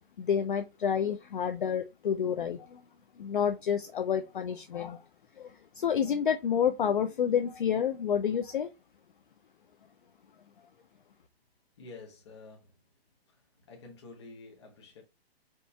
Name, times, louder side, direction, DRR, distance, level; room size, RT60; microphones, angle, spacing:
voice 1, 0.2-2.8 3.2-5.0 5.4-8.7, left 8 dB, 55° left, 0.5 m, -29 dB
voice 2, 11.8-12.8 13.3-13.4 13.7-15.0, left 3 dB, 25° left, 1.0 m, -49 dB
4.4 x 2.6 x 3.4 m
hypercardioid pair, 175°, 31 cm